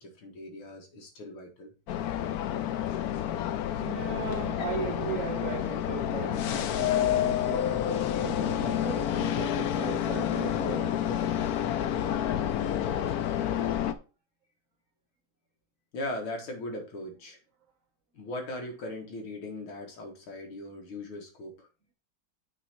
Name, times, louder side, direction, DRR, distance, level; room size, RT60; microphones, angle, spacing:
voice 1, 0.0-1.7 15.9-17.4 18.1-21.7, left 1 dB, 90° left, 2.5 m, -39 dB
sound 1, 1.9-13.9, left 11 dB, 75° left, 0.8 m, -29 dB
voice 2, 3.7-11.3, right 7 dB, 60° right, 0.8 m, -38 dB
8.9 x 4.2 x 4.4 m
omnidirectional pair, 2.2 m